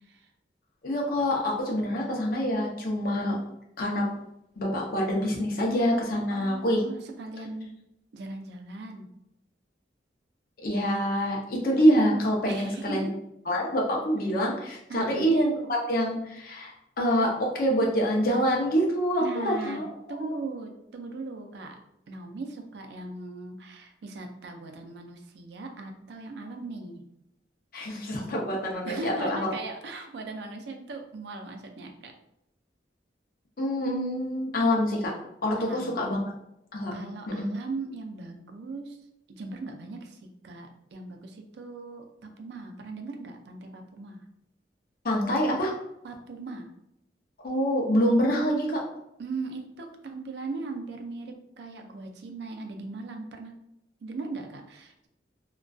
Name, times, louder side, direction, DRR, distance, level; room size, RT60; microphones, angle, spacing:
voice 1, 0.8-3.4 3.8-4.1 4.6-6.8 10.6-13.1 13.5-20.3 27.7-29.5 33.6-35.1 35.4-36.2 36.7-37.0 37.3-37.5 45.0-45.7 47.4-48.8, equal, 55° left, -1 dB, 0.5 m, -26 dB
voice 2, 6.3-7.7 8.1-9.1 12.5-13.2 14.9-15.3 19.2-21.8 22.1-27.0 28.8-32.1 35.6-35.9 36.9-39.0 39.3-40.2 40.4-44.2 46.0-46.7 49.2-53.5 54.0-55.1, right 3 dB, 70° right, 4 dB, 0.4 m, -39 dB
2.4 x 2.2 x 2.3 m, 0.82 s
head